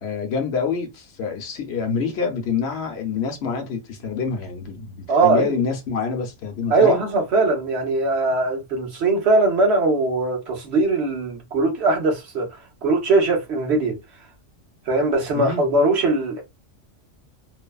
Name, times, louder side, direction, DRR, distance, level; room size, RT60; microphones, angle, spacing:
voice 1, 0.0-5.0 5.2-7.0 15.3-15.6, left 5 dB, 60° left, 0.9 m, -26 dB
voice 2, 5.1-5.6 6.7-12.5 12.8-14.0 14.9-16.4, right 3 dB, 60° right, 1.2 m, -20 dB
3.2 x 2.1 x 2.3 m
omnidirectional pair, 1.3 m